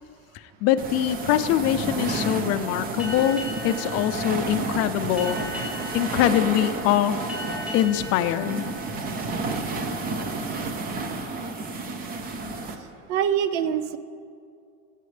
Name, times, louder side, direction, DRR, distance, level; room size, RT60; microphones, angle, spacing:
voice 1, 0.3-7.2 7.7-8.8, left 11 dB, 45° left, 12 dB, 0.4 m, -24 dB
sound 1, 0.8-12.8, right 3 dB, 25° right, 0.6 m, -31 dB
Boat Water vehicle, 3.0-10.1, left 2 dB, 5° right, 2.5 m, -39 dB
voice 2, 13.1-14.0, right 9 dB, 80° right, 13 dB, 0.7 m, -24 dB
15.5 x 8.2 x 3.3 m, 2.3 s
cardioid pair, 165°, 35 cm